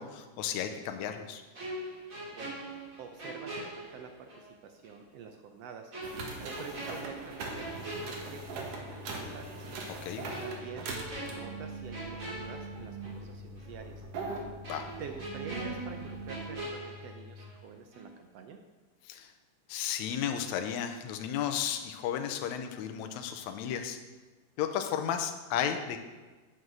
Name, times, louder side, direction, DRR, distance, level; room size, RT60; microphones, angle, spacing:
voice 1, 0.0-1.4 9.9-10.2 14.7-14.8 19.1-19.3 19.7-24.0 24.6-26.0, left 9 dB, 75° left, 6 dB, 1.9 m, -33 dB
sound 1, 1.5-4.5 4.8-5.0 5.9-8.9 9.2-9.4 10.3-13.3 13.6-13.7 14.6-17.7 17.9-18.2, right 1 dB, 30° right, 2.5 m, -42 dB
voice 2, 3.0-5.9 6.4-9.7 10.4-10.9 11.3-14.0 15.0-18.6, right 6 dB, 80° right, 5 dB, 1.4 m, -47 dB
sound 2, 6.0-16.5, right 3 dB, 60° right, 2.2 m, -42 dB
sound 3, 7.5-17.5, left 6 dB, ahead, 3.5 m, -50 dB
9.5 x 6.5 x 6.2 m, 1.3 s
omnidirectional pair, 3.6 m